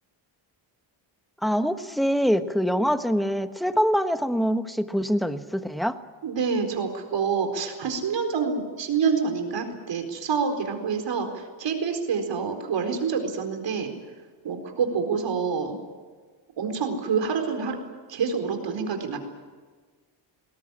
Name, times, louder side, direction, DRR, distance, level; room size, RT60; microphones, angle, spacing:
voice 1, 1.4-6.0, equal, ahead, 9 dB, 1.3 m, -24 dB
voice 2, 6.2-13.9 14.4-15.8 16.6-17.8 18.1-19.2, right 5 dB, 65° right, 5 dB, 4.4 m, -27 dB
21.0 x 18.0 x 9.9 m, 1.4 s
cardioid pair, 100°, 48 cm